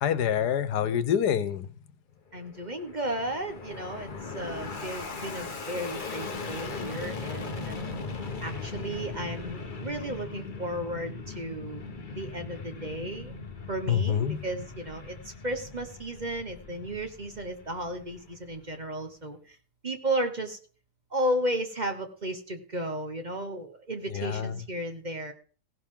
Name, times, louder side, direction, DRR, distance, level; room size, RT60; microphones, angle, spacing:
voice 1, 0.0-1.7 13.9-14.4 24.1-24.6, left 9 dB, 90° left, 1.5 m, -26 dB
Fixed-wing aircraft airplane, 2.3-18.9, left 4 dB, 35° left, 1.3 m, -39 dB
voice 2, 2.3-7.8 8.4-11.8 12.1-13.3 13.7-19.6 19.8-20.6 21.1-25.3, right 1 dB, 30° right, 1.1 m, -34 dB
16.5 x 11.5 x 3.8 m
omnidirectional pair, 1.7 m